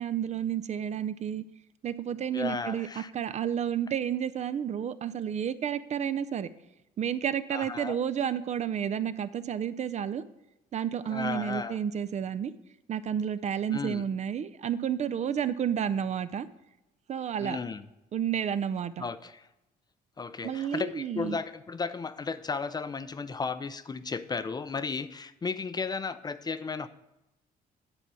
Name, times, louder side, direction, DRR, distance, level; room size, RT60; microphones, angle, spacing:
voice 1, 0.0-1.4 1.8-6.5 7.0-10.2 10.7-12.5 12.9-16.5 17.1-17.6 18.1-19.0 20.4-21.4, right 8 dB, 45° right, 13 dB, 0.4 m, -31 dB
voice 2, 2.3-3.1 7.5-8.0 11.1-11.8 13.7-14.0 17.4-17.9 19.0-19.5 20.2-26.9, left 4 dB, 25° left, 13 dB, 0.4 m, -34 dB
9.8 x 4.5 x 6.8 m, 0.95 s
cardioid pair, 110°, 17 cm